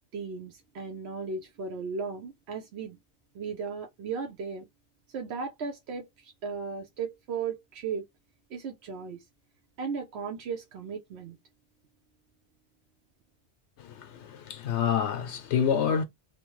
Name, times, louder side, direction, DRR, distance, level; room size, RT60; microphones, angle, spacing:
voice 1, 0.1-3.0 3.3-4.6 5.1-8.1 8.5-9.2 9.8-11.4, right 5 dB, 70° right, 0.9 m, -36 dB
voice 2, 13.8-16.0, left 7 dB, 80° left, 0.9 m, -28 dB
3.0 x 2.1 x 3.0 m
omnidirectional pair, 1.1 m